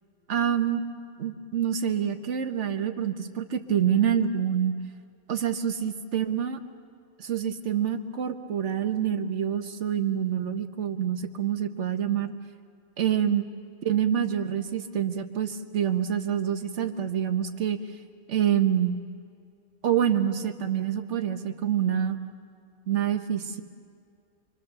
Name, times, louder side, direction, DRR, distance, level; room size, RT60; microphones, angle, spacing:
voice 1, 0.3-0.8 1.2-4.8 5.3-6.6 7.2-12.3 13.0-13.4 13.8-17.8 18.3-19.0 19.8-22.2 22.9-23.6, right 9 dB, 65° right, 7 dB, 1.4 m, -26 dB
26.0 x 24.5 x 6.8 m, 2.2 s
omnidirectional pair, 1.3 m